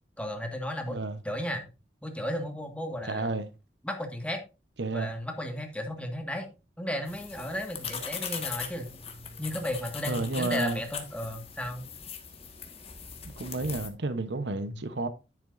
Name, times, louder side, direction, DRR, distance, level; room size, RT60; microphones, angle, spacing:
voice 1, 0.2-1.0 1.2-1.6 2.0-3.3 3.8-4.4 4.9-6.5 6.8-8.9 9.4-11.8 14.6-14.8, left 1 dB, 5° left, 1.7 m, -34 dB
voice 2, 0.9-1.2 3.1-3.5 4.8-5.1 10.1-10.8 13.2-15.1, right 2 dB, 75° right, 1.0 m, -31 dB
sound 1, 7.1-13.9, left 6 dB, 35° left, 1.7 m, -40 dB
10.0 x 8.6 x 2.6 m
head